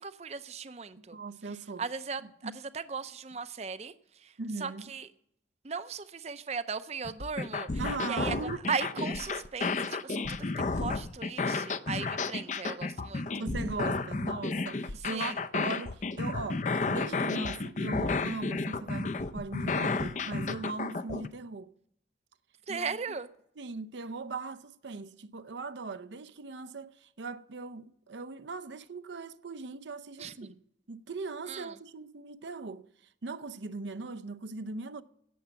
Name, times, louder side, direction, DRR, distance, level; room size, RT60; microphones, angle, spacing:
voice 1, 0.0-1.2 1.8-3.9 4.2-4.3 4.6-5.1 5.6-7.7 8.1-8.4 8.7-13.3 15.1-15.4 22.7-23.3 30.2-30.3 31.5-31.7, right 5 dB, 35° right, 0.5 m, -37 dB
voice 2, 1.1-1.9 2.2-2.6 4.4-5.0 7.8-8.6 13.4-21.7 22.7-23.2 23.6-30.6 30.9-32.9 33.2-35.0, right 3 dB, 75° right, 0.6 m, -39 dB
sound 1, 7.0-21.3, left 3 dB, 40° left, 0.5 m, -32 dB
16.5 x 7.1 x 6.9 m
head